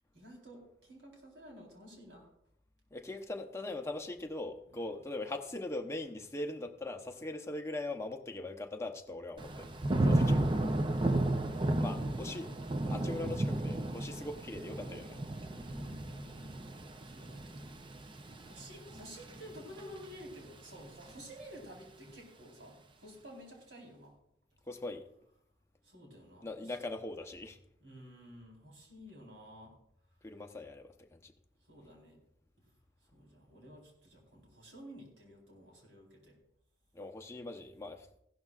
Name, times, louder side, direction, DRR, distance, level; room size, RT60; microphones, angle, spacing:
voice 1, 0.1-2.3 4.7-4.9 11.6-12.4 15.2-16.6 17.0-17.6 18.3-24.1 25.8-26.7 27.8-29.8 31.7-32.2 33.1-36.4, equal, 85° right, 0 dB, 4.0 m, -52 dB
voice 2, 2.9-9.7 10.0-10.4 11.8-12.6 12.9-15.2 24.7-25.0 26.4-27.6 30.2-31.3 36.9-38.1, left 2 dB, 15° left, 4 dB, 0.8 m, -41 dB
Thunder / Rain, 9.4-20.3 20.7-21.2, right 1 dB, 25° right, 0.6 m, -33 dB
15.5 x 12.0 x 2.4 m, 0.74 s
head